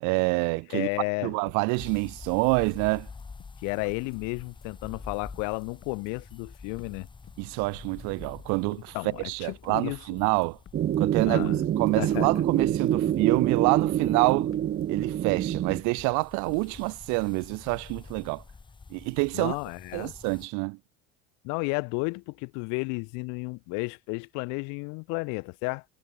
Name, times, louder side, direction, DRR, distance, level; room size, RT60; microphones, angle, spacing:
voice 1, 0.0-0.9 1.2-3.1 7.4-8.9 9.2-10.6 11.0-11.4 11.8-14.5 14.9-18.4 18.9-19.5 19.9-20.8, right 29 dB, 75° right, 1.5 m, -27 dB
voice 2, 0.7-1.3 3.6-7.1 8.9-10.2 11.2-11.6 12.0-12.4 19.3-20.1 21.4-25.8, left 33 dB, 75° left, 1.7 m, -32 dB
sound 1, 1.5-16.8, left 11 dB, 45° left, 7.8 m, -54 dB
sound 2, 1.8-20.5, left 4 dB, 15° left, 1.7 m, -48 dB
sound 3, 10.7-15.8, right 11 dB, 35° right, 0.9 m, -26 dB
cardioid pair, 130°, 30 cm